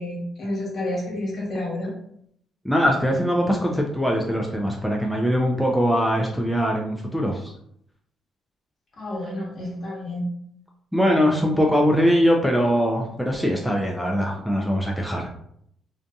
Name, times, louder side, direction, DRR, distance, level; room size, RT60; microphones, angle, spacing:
voice 1, 0.0-1.9 9.0-10.3, left 1 dB, 50° left, -3 dB, 1.1 m, -30 dB
voice 2, 2.6-7.5 10.9-15.3, equal, ahead, 0 dB, 0.4 m, -22 dB
2.5 x 2.5 x 2.3 m, 0.71 s
cardioid pair, 75°, 0 cm